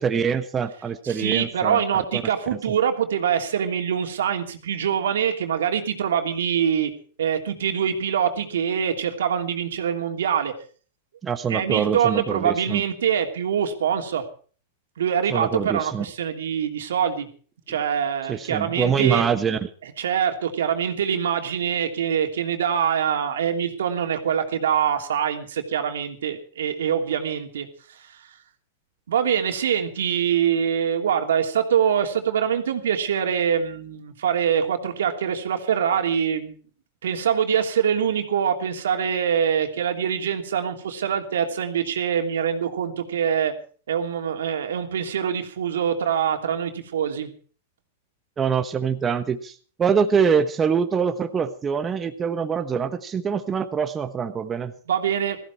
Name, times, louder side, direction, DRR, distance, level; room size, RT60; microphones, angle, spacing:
voice 1, 0.0-2.2 2.7-2.8 11.2-12.8 15.3-16.0 18.3-19.7 48.4-54.7, right 6 dB, 20° right, 8 dB, 1.2 m, -24 dB
voice 2, 1.0-6.9 7.2-10.5 11.5-14.3 15.0-17.3 17.7-19.2 20.0-28.1 29.1-36.5 37.0-43.5 43.9-47.3 54.9-55.4, right 8 dB, 80° right, 5 dB, 2.9 m, -24 dB
16.5 x 15.0 x 4.7 m, 0.42 s
hypercardioid pair, 125°, 0 cm